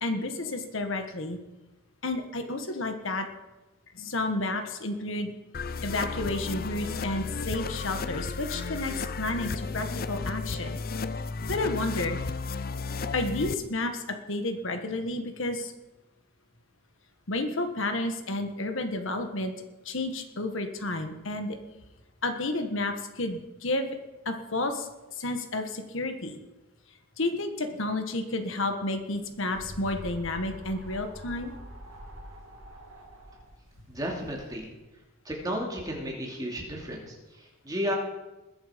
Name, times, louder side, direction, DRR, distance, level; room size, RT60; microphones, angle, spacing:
voice 1, 0.0-1.4 2.0-3.3 3.9-5.3 5.8-10.8 11.5-12.2 13.1-15.7 17.3-19.5 19.8-21.6 22.2-24.0 24.2-24.9 25.2-26.4 27.2-31.5, left 2 dB, 65° left, 6 dB, 1.5 m, -31 dB
sound 1, 5.5-13.5, left 4 dB, 45° left, 0.6 m, -33 dB
sound 2, 29.0-34.6, equal, 75° right, 2.5 m, -45 dB
voice 2, 33.9-34.7 35.2-37.9, equal, 20° right, -1 dB, 2.8 m, -33 dB
21.0 x 7.9 x 5.2 m, 1.1 s
head